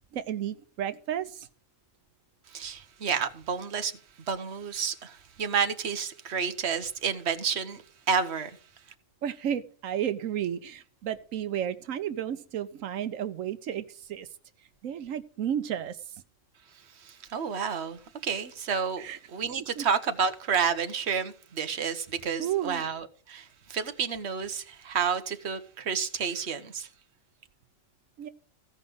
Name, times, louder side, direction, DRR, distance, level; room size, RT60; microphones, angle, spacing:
voice 1, 0.1-1.5 9.2-14.3 14.8-16.1 19.0-19.2 19.8-19.9 21.8-21.9 22.4-22.8 28.2-28.3, right 10 dB, 90° right, 1.1 m, -32 dB
voice 2, 2.5-3.9 4.3-8.5 17.0-19.0 19.3-26.9, right 6 dB, 55° right, 1.3 m, -30 dB
15.5 x 5.3 x 7.8 m
omnidirectional pair, 1.3 m